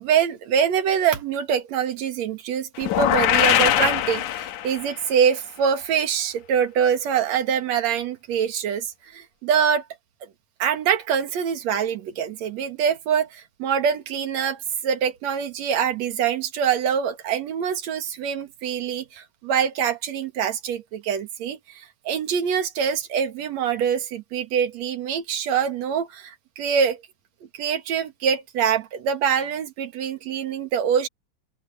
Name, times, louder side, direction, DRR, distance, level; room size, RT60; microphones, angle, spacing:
voice 1, 0.0-9.8 10.6-27.0 27.5-31.1, right 8 dB, 65° right, 2.9 m, -24 dB
sound 1, 2.8-5.0, left 12 dB, 90° left, 2.6 m, -21 dB
open air
omnidirectional pair, 3.3 m